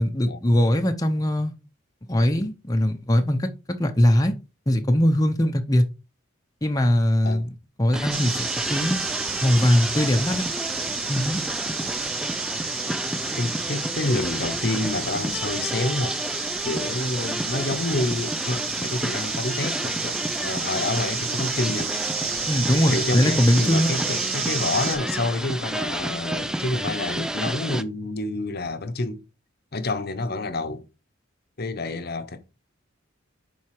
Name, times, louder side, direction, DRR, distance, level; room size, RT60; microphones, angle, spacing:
voice 1, 0.0-1.5 2.1-3.5 3.8-4.3 4.7-5.8 6.6-7.5 7.8-9.0 9.4-10.4 11.1-11.4 22.5-23.9, left 1 dB, 15° left, 0.7 m, -21 dB
voice 2, 7.2-7.6 13.4-16.2 16.6-21.9 22.5-29.2 29.7-30.8 31.6-32.4, left 2 dB, 50° left, 0.9 m, -28 dB
sound 1, 7.9-27.8, right 1 dB, 5° right, 0.4 m, -31 dB
sound 2, 8.1-25.0, right 5 dB, 85° right, 3.4 m, -31 dB
7.4 x 4.7 x 4.8 m
head